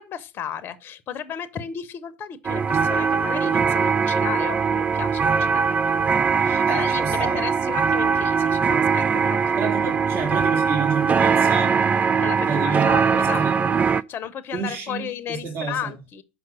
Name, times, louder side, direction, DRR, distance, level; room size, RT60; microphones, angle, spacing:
voice 1, 0.0-5.8 6.4-9.6 12.2-13.4 14.1-16.2, left 9 dB, 35° left, 0.8 m, -34 dB
sound 1, 2.4-14.0, right 6 dB, 25° right, 0.3 m, -21 dB
voice 2, 6.7-7.5 9.6-11.9 12.5-13.8 14.5-15.9, right 5 dB, 45° right, 2.6 m, -30 dB
5.9 x 5.2 x 6.3 m
hypercardioid pair, 85°, 6 cm